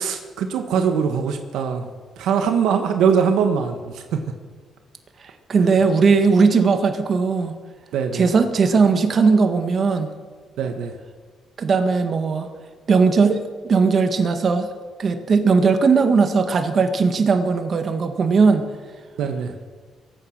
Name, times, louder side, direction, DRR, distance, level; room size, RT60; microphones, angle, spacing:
voice 1, 0.0-1.9 2.2-4.2 5.6-5.7 7.9-8.3 10.6-10.9 19.2-19.5, right 6 dB, 85° right, 6 dB, 1.5 m, -22 dB
voice 2, 5.5-7.6 8.1-10.1 11.6-12.5 12.9-14.7 15.0-18.7, right 4 dB, 50° right, 7 dB, 1.9 m, -18 dB
23.0 x 9.2 x 6.5 m, 1.5 s
cardioid pair, 90°, 0 cm